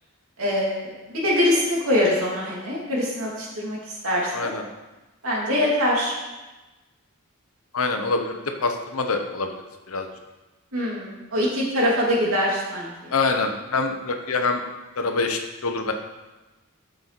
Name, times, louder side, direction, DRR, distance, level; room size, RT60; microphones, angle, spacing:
voice 1, 0.4-4.5 5.2-6.1 10.7-13.1, left 1 dB, 75° right, -4 dB, 3.0 m, -24 dB
voice 2, 4.3-4.6 7.7-9.5 9.9-10.1 13.1-14.6 15.0-15.9, left 3 dB, 80° left, 5 dB, 1.1 m, -25 dB
12.0 x 6.7 x 4.2 m, 1.1 s
head